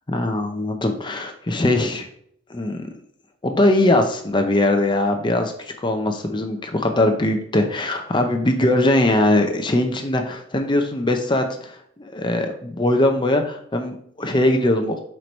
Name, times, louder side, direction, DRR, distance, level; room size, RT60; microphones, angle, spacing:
voice 1, 0.1-2.1 2.5-2.9 3.4-15.0, left 1 dB, 25° left, 5 dB, 0.6 m, -21 dB
4.7 x 4.5 x 5.3 m, 0.65 s
head